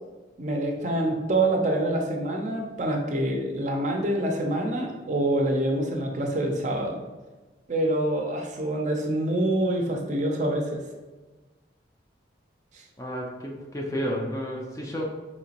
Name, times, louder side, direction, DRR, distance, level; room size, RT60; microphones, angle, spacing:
voice 1, 0.4-7.0 7.7-10.8 12.7-12.9, right 1 dB, 40° right, 1 dB, 0.5 m, -26 dB
voice 2, 13.0-15.0, equal, 15° left, 0 dB, 0.4 m, -31 dB
4.4 x 2.9 x 2.8 m, 1.2 s
head